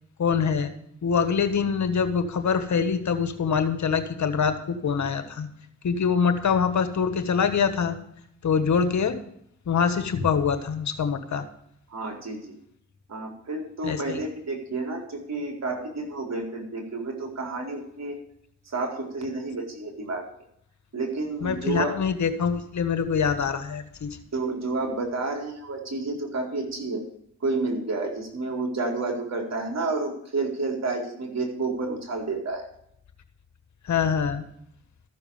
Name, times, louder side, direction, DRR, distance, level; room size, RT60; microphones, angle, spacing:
voice 1, 0.2-0.7 1.0-5.5 5.8-8.0 8.4-9.2 9.7-11.5 13.8-14.2 21.4-24.2 33.8-34.4, left 6 dB, 60° left, 9 dB, 1.6 m, -24 dB
voice 2, 11.9-12.6 13.1-18.2 18.7-20.2 20.9-21.9 24.3-27.1 27.4-32.7, right 3 dB, 55° right, 1 dB, 4.4 m, -30 dB
14.0 x 7.0 x 7.2 m, 0.72 s
supercardioid pair, 50°, 32 cm